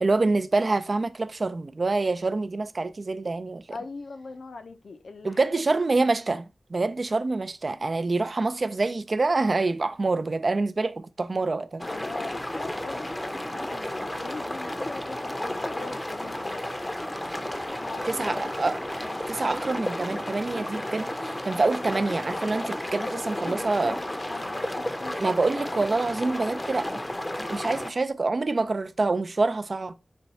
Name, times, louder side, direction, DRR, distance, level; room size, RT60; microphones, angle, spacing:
voice 1, 0.0-3.6 5.2-6.5 6.7-11.9 18.0-18.8 19.3-24.0 25.2-27.0 27.4-29.9, right 3 dB, 55° right, 0.3 m, -26 dB
voice 2, 3.7-5.6 11.9-16.6 17.8-18.6 22.8-25.4, left 3 dB, 85° left, 0.5 m, -41 dB
sound 1, 11.8-27.9, left 1 dB, 20° left, 0.5 m, -32 dB
4.3 x 2.3 x 4.0 m
wide cardioid pair, 60°, 0 cm